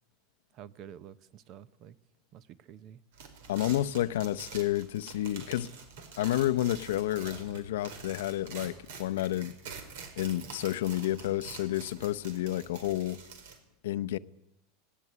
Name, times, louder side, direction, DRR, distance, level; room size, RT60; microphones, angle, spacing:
voice 1, 0.5-2.0 2.3-3.0, right 10 dB, 35° right, 0.8 m, -49 dB
sound 1, 3.1-13.6, right 5 dB, 75° right, 4.7 m, -47 dB
voice 2, 3.5-5.7 6.2-9.5 10.2-13.2 13.8-14.2, left 13 dB, 85° left, 0.8 m, -30 dB
18.5 x 17.5 x 9.7 m
supercardioid pair, 160°, 0 cm